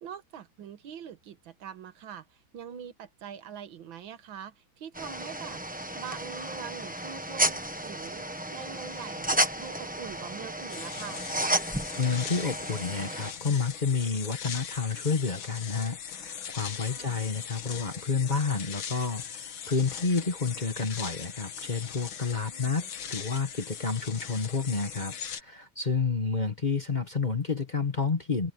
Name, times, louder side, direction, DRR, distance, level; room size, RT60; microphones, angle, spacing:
voice 1, 0.0-5.6 5.9-11.3 16.8-17.2 22.3-22.9, right 8 dB, 85° right, 2.0 m, -43 dB
sound 1, 4.9-13.3, right 1 dB, 5° right, 0.9 m, -32 dB
sound 2, 10.7-25.4, left 8 dB, 90° left, 2.3 m, -40 dB
voice 2, 11.9-22.8 23.1-28.5, left 4 dB, 25° left, 1.2 m, -30 dB
omnidirectional pair, 2.1 m